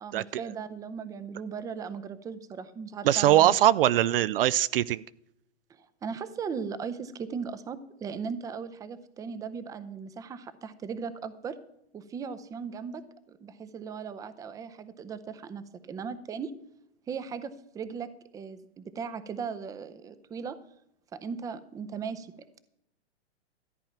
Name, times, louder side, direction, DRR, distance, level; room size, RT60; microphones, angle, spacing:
voice 1, 0.0-3.6 5.7-11.6 11.9-16.5 17.1-20.6 21.1-22.3, right 6 dB, 10° right, 14 dB, 0.6 m, -38 dB
voice 2, 3.0-5.0, right 12 dB, 55° right, 18 dB, 0.5 m, -22 dB
14.0 x 8.8 x 5.8 m, 0.79 s
hypercardioid pair, 130°, 33 cm